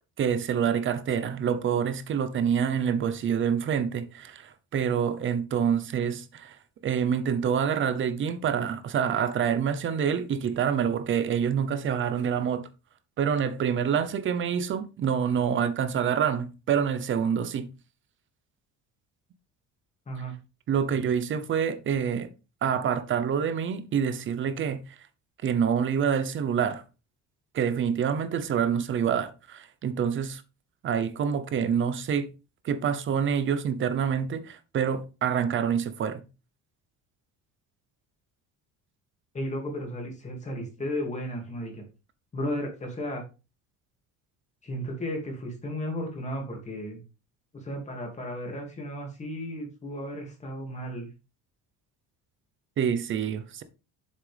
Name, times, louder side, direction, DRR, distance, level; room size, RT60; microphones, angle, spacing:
voice 1, 0.2-6.6 6.8-12.7 13.2-17.7 20.7-22.3 22.6-25.0 25.4-26.8 27.5-30.4 30.8-32.3 32.6-36.2 52.8-53.6, right 7 dB, 35° right, 0.8 m, -27 dB
voice 2, 39.3-41.8 42.3-43.2 44.6-47.0 47.5-51.1, equal, 20° left, 2.4 m, -34 dB
7.6 x 6.4 x 3.4 m
cardioid pair, 170°, 33 cm